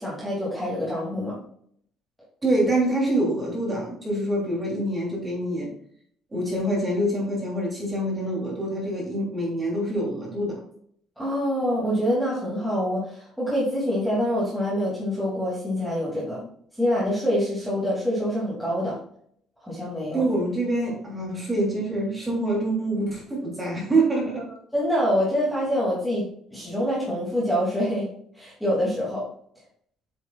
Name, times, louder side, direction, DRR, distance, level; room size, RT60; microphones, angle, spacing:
voice 1, 0.0-1.4 11.2-16.5 16.8-19.0 19.6-20.2 24.7-26.3 26.5-28.1 28.3-29.2, equal, ahead, -7 dB, 2.6 m, -25 dB
voice 2, 2.4-5.7 6.3-10.6 20.1-24.5, right 1 dB, 15° right, -3 dB, 3.1 m, -25 dB
8.3 x 7.2 x 2.4 m, 0.64 s
cardioid pair, 170°, 0 cm